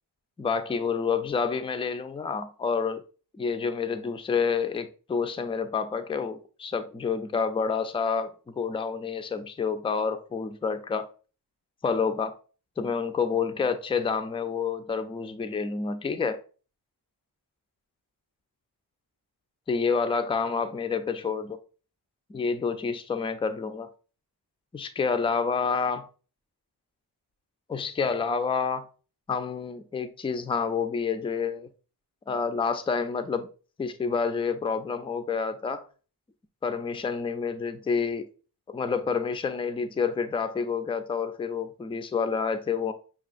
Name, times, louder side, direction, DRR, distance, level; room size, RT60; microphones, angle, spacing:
voice 1, 0.4-3.0 3.4-11.1 11.8-12.3 12.8-16.4 19.7-21.6 22.3-23.9 24.7-26.1 27.7-28.9 29.3-31.7 32.3-33.5 33.8-35.8 36.6-38.3 38.7-42.9, left 5 dB, 15° left, 0.3 m, -28 dB
5.9 x 2.3 x 2.4 m
cardioid pair, 70°, 42 cm